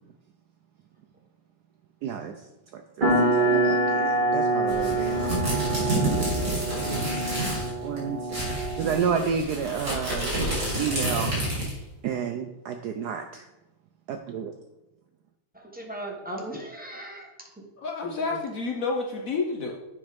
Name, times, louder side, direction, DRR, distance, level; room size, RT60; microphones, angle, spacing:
voice 1, 2.0-2.4 2.7-5.4 6.5-6.6 7.5-10.3 10.6-11.4 12.0-13.5 14.1-14.5, right 7 dB, 75° right, 5 dB, 0.9 m, -31 dB
sound 1, 3.0-9.2, right 2 dB, 25° right, 1.5 m, -26 dB
sound 2, 4.7-7.7 8.0-8.1 8.3-11.8, right 1 dB, 50° right, 3.3 m, -29 dB
voice 2, 15.5-17.3 17.6-17.7 18.0-18.4, right 1 dB, 10° right, -1 dB, 0.6 m, -38 dB
voice 3, 17.8-19.8, left 4 dB, 60° left, 1 dB, 0.9 m, -29 dB
7.8 x 4.2 x 5.1 m, 1.0 s
omnidirectional pair, 2.1 m